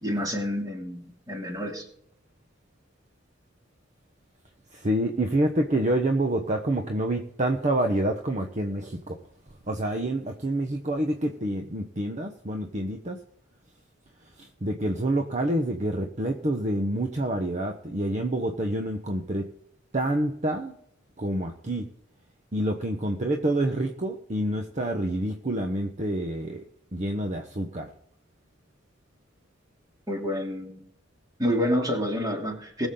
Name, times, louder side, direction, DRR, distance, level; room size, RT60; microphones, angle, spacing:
voice 1, 0.0-1.9 30.1-30.8 31.4-32.9, equal, 20° right, 2.8 m, -28 dB
voice 2, 4.7-9.2 9.7-13.2 14.4-19.5 19.9-20.8 21.2-21.9 22.5-26.6 26.9-27.9, right 1 dB, 40° right, 1.0 m, -27 dB
20.5 x 7.2 x 3.8 m
head